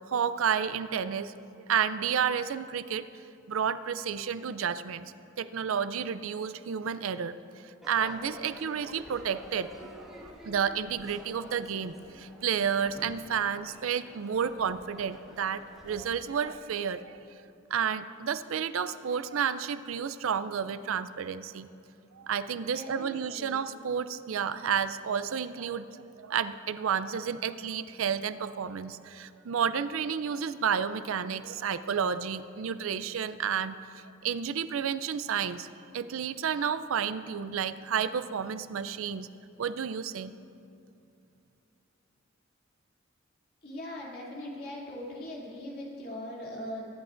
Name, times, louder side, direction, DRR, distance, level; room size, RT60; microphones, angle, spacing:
voice 1, 0.1-1.3 1.7-3.0 3.5-7.3 7.6-17.2 17.7-21.7 22.1-25.9 26.2-35.7 35.9-39.3 39.6-40.3, right 7 dB, 75° right, 13 dB, 0.4 m, -31 dB
Crowd / Fireworks, 7.8-16.1, equal, ahead, 1.6 m, -50 dB
voice 2, 22.5-23.6 43.6-46.9, left 1 dB, 45° left, -4 dB, 2.7 m, -40 dB
24.0 x 11.0 x 2.6 m, 2.6 s
head